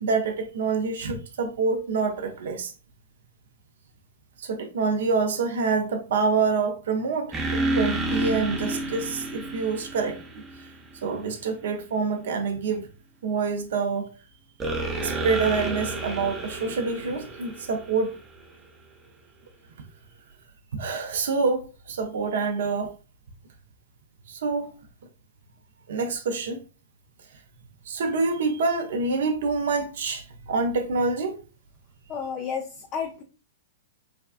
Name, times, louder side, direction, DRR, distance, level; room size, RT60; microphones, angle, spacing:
voice 1, 0.0-2.7 4.4-10.4 11.0-12.9 13.2-14.1 15.0-18.1 20.7-22.9 24.3-24.7 25.9-26.6 27.9-31.4, right 4 dB, 65° right, 0.5 m, -26 dB
sound 1, 7.3-11.0 14.6-18.5, right 2 dB, 15° right, 0.6 m, -30 dB
voice 2, 32.1-33.2, left 6 dB, 35° left, 0.4 m, -31 dB
3.4 x 2.3 x 2.4 m
hypercardioid pair, 110°, 0 cm